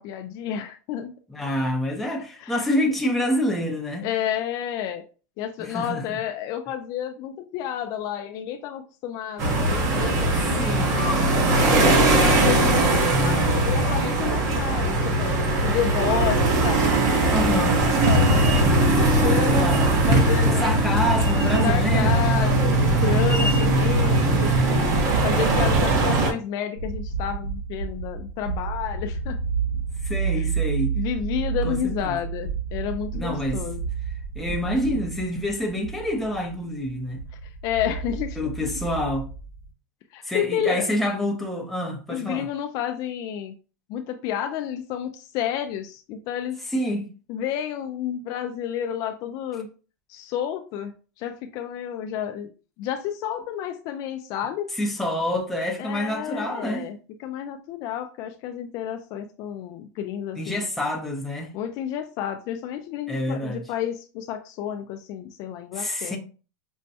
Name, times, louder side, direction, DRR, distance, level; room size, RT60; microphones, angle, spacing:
voice 1, 0.0-1.1 2.4-2.7 4.0-5.0 5.4-11.2 11.7-19.6 20.1-20.7 21.6-29.4 30.4-30.5 30.9-33.8 34.9-35.0 37.4-38.5 40.1-40.9 42.1-43.5 43.9-46.6 47.3-49.7 50.1-52.5 52.8-54.7 55.8-60.6 61.5-66.2, left 10 dB, 40° left, 0.4 m, -30 dB
voice 2, 1.3-4.1 5.6-6.2 10.6-11.1 17.3-18.0 19.6-19.9 20.5-22.4 24.6-25.0 26.0-26.1 30.0-30.9 31.6-32.2 33.1-33.6 34.3-37.2 38.4-39.3 40.2-42.5 46.7-47.1 54.8-56.9 60.4-61.5 63.1-63.6 65.7-66.2, left 1 dB, ahead, 0.7 m, -27 dB
sound 1, 9.4-26.3, right 2 dB, 35° right, 1.0 m, -20 dB
sound 2, 26.8-39.7, right 6 dB, 75° right, 2.1 m, -31 dB
5.3 x 2.1 x 2.7 m
supercardioid pair, 140°, 10 cm